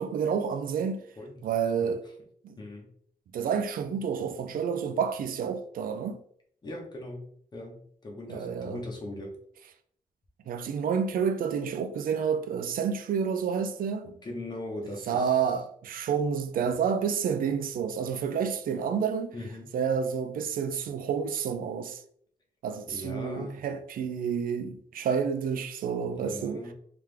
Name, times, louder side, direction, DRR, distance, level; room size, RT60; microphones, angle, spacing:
voice 1, 0.0-1.0 1.4-2.0 2.4-2.6 3.3-6.2 8.3-8.8 10.5-14.1 15.1-19.3 19.7-22.0 22.6-26.6, right 7 dB, 80° right, 0.5 m, -29 dB
voice 2, 1.8-2.1 2.6-2.9 6.6-9.3 14.2-15.6 19.3-19.8 22.9-23.7 26.2-26.7, left 1 dB, 30° left, 1.1 m, -40 dB
3.5 x 3.2 x 3.3 m
wide cardioid pair, 145°, 14 cm